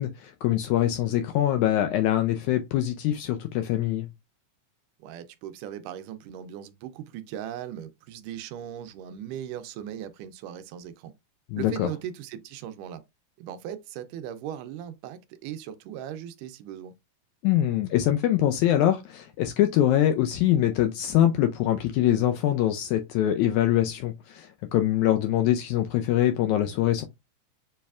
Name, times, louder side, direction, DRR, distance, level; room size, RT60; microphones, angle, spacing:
voice 1, 0.0-4.1 11.5-11.9 17.4-27.0, left 12 dB, 80° left, 1.7 m, -24 dB
voice 2, 5.0-11.1 11.6-13.0 13.4-16.9, right 10 dB, 80° right, 2.1 m, -38 dB
6.9 x 3.2 x 2.3 m
omnidirectional pair, 3.8 m